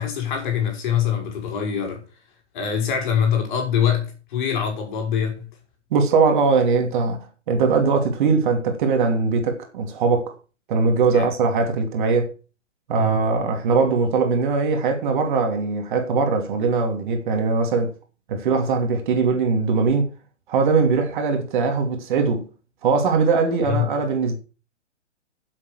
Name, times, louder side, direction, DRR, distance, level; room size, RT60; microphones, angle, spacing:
voice 1, 0.0-2.0 2.5-5.5 11.1-11.3 13.0-13.2 23.6-23.9, left 8 dB, 40° left, 5.6 m, -24 dB
voice 2, 5.9-10.3 10.7-12.3 12.9-17.9 18.3-20.1 20.5-22.5 22.8-24.4, right 4 dB, 40° right, 3.0 m, -21 dB
11.5 x 7.7 x 6.5 m
figure-of-eight pair, 125°, 36 cm